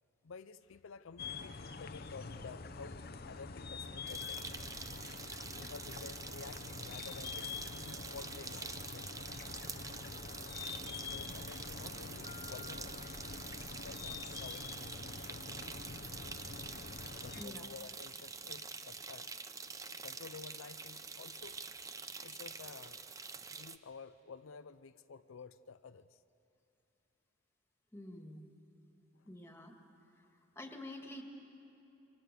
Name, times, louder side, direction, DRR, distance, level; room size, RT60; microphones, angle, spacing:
voice 1, 0.2-4.6 5.1-9.6 10.8-13.0 13.8-15.9 17.2-19.3 20.0-21.6 22.2-23.0 23.4-26.2 29.1-29.3, left 5 dB, 85° left, 11 dB, 0.5 m, -52 dB
sound 1, 1.2-17.5, left 4 dB, 50° left, 0.8 m, -46 dB
sound 2, 4.1-23.8, right 5 dB, 15° right, 0.5 m, -47 dB
Piano, 12.2-14.1, left 6 dB, 40° right, 2.7 m, -56 dB
voice 2, 27.9-28.5 29.2-29.7 30.6-31.2, left 1 dB, 10° left, 3 dB, 2.0 m, -47 dB
28.0 x 24.0 x 6.9 m, 2.8 s
head